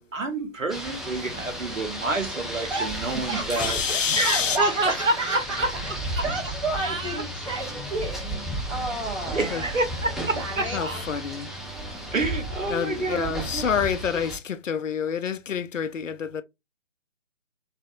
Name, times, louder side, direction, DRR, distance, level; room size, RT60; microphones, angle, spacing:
voice 1, 0.1-3.8 4.1-5.7 6.1-6.2 6.8-7.2 9.3-11.0 12.1-13.6, right 2 dB, 80° right, 1.2 m, -28 dB
Rain, 0.7-14.4, right 1 dB, ahead, 0.3 m, -34 dB
voice 2, 2.7-8.3 8.7-9.7 10.3-10.8, right 2 dB, 25° right, 1.2 m, -32 dB
voice 3, 3.5-4.6 9.5-9.6 10.7-11.5 12.7-16.4, left 7 dB, 80° left, 0.5 m, -27 dB
3.3 x 2.3 x 2.7 m
figure-of-eight pair, 160°, 38 cm